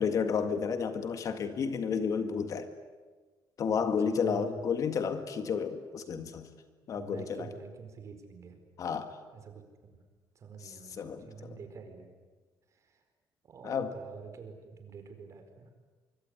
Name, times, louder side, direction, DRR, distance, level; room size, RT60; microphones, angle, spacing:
voice 1, 0.0-2.7 3.6-6.5 6.9-7.5 8.8-9.2 10.6-11.6 13.6-13.9, left 6 dB, 45° left, 9 dB, 1.9 m, -31 dB
voice 2, 4.0-4.6 6.9-8.6 9.3-9.9 10.3-12.1 12.7-13.0 13.4-15.7, right 5 dB, 40° right, 6 dB, 4.6 m, -47 dB
25.0 x 24.0 x 9.6 m, 1.4 s
cardioid pair, 165°, 8 cm